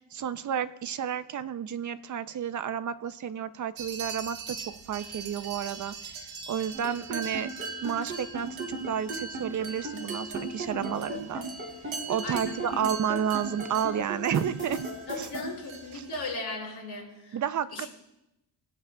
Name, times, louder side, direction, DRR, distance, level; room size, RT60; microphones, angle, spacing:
voice 1, 0.0-7.5 7.8-11.4 12.1-14.8 15.2-15.3 15.9-16.1 17.3-17.9, right 8 dB, 45° right, 13 dB, 0.4 m, -31 dB
sound 1, 3.8-16.4, right 4 dB, 90° right, 1.1 m, -41 dB
sound 2, 6.7-15.4, right 2 dB, 25° right, 3.7 m, -35 dB
voice 2, 12.2-12.8 15.1-17.4 17.7-17.9, left 2 dB, 60° left, -4 dB, 4.5 m, -37 dB
21.0 x 7.9 x 2.2 m, 0.93 s
wide cardioid pair, 155°, 45 cm